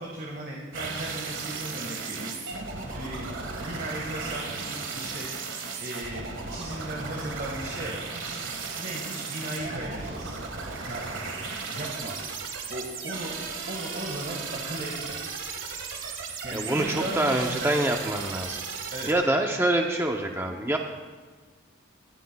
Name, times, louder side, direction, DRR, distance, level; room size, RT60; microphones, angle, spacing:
voice 1, 0.0-2.4 2.9-8.3 8.7-10.4 10.8-11.0 11.7-12.2 12.7-13.4 13.7-15.2 16.4-17.7 18.9-19.1, right 1 dB, 45° right, -2 dB, 1.6 m, -36 dB
sound 1, 0.7-19.1, right 4 dB, 70° right, 1.6 m, -35 dB
voice 2, 16.5-18.6 19.1-20.8, right 1 dB, 10° right, 2 dB, 0.6 m, -26 dB
20.5 x 13.5 x 2.3 m, 1.5 s
head